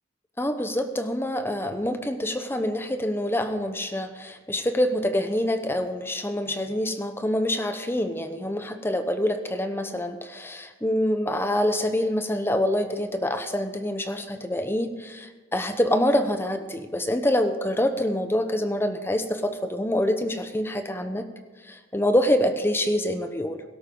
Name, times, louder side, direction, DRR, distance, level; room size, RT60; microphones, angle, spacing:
voice 1, 0.4-21.3 21.6-23.6, left 1 dB, 10° left, 8 dB, 0.8 m, -26 dB
17.0 x 13.0 x 3.8 m, 1.3 s
head